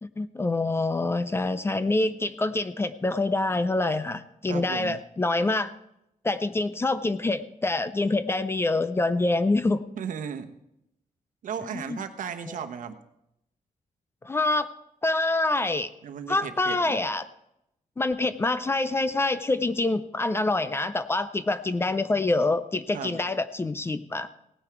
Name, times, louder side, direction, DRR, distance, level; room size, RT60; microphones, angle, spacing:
voice 1, 0.0-5.7 6.2-9.8 11.7-12.0 12.5-12.6 14.2-14.7 15.0-15.9 16.3-17.3 18.0-24.3, left 2 dB, 20° left, 13 dB, 0.4 m, -26 dB
voice 2, 4.5-5.0 10.0-10.5 11.4-12.9 16.0-17.0 22.9-23.2, right 7 dB, 70° right, 7 dB, 1.0 m, -35 dB
17.0 x 9.5 x 4.5 m, 0.82 s
wide cardioid pair, 170°, 14 cm